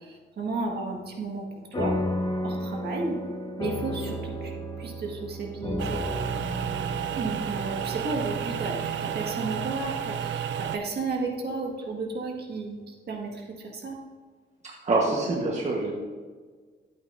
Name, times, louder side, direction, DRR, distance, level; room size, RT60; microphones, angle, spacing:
voice 1, 0.0-2.0 2.4-3.2 3.6-4.5 4.8-6.0 7.2-14.0, right 3 dB, 55° right, 0 dB, 1.7 m, -33 dB
sound 1, 1.7-10.5, left 1 dB, 25° left, 1.0 m, -34 dB
sound 2, 5.8-10.8, right 8 dB, 75° right, 0.5 m, -31 dB
voice 2, 14.6-15.9, right 2 dB, 35° right, -2 dB, 1.2 m, -26 dB
11.5 x 8.6 x 2.6 m, 1.5 s
wide cardioid pair, 135°, 19 cm